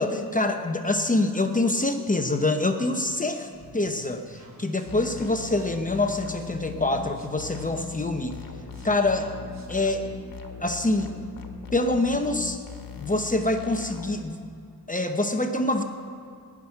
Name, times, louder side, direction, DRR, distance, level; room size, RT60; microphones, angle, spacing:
voice 1, 0.0-8.4 8.8-9.4 9.7-10.1 10.6-11.1 11.7-12.6 13.0-14.4 14.9-15.8, left 2 dB, 20° left, 5 dB, 0.8 m, -25 dB
sound 1, 3.5-9.9, right 3 dB, 45° right, 3.3 m, -49 dB
sound 2, 4.9-14.2, left 6 dB, 65° left, 1.4 m, -40 dB
15.5 x 6.1 x 9.9 m, 2.4 s
wide cardioid pair, 105°, 38 cm